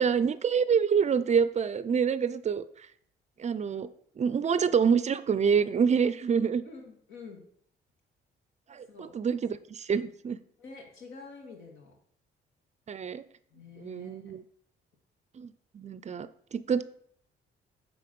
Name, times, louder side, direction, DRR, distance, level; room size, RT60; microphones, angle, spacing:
voice 1, 0.0-2.6 3.4-3.9 4.2-6.6 8.7-10.4 12.9-13.2 13.8-14.4 15.4-16.8, right 6 dB, 35° right, 14 dB, 0.4 m, -27 dB
voice 2, 6.6-7.4 8.9-9.1 10.6-11.9 13.5-14.2, left 4 dB, 80° left, 1 dB, 1.9 m, -47 dB
8.4 x 3.9 x 5.2 m, 0.65 s
cardioid pair, 90°, 20 cm